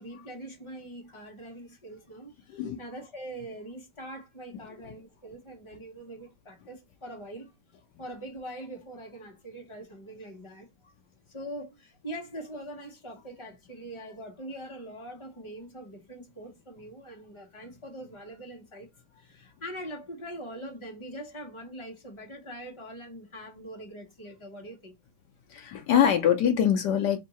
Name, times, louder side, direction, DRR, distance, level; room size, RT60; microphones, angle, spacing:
voice 1, 0.0-10.9 11.3-25.0, right 1 dB, 20° left, 1.0 m, -43 dB
voice 2, 25.5-27.2, left 9 dB, 80° left, 0.9 m, -23 dB
3.7 x 2.7 x 4.1 m
omnidirectional pair, 2.4 m